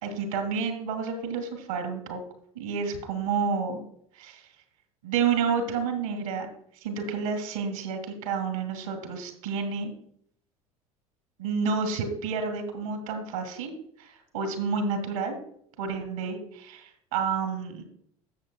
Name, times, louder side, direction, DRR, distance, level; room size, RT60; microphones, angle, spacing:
voice 1, 0.0-2.2 2.6-3.8 4.2-4.4 5.0-6.5 6.8-9.9 11.4-13.7 14.0-15.4 15.8-17.8, right 5 dB, 70° right, 7 dB, 2.1 m, -30 dB
13.0 x 7.6 x 2.3 m, 0.65 s
figure-of-eight pair, 65°, 18 cm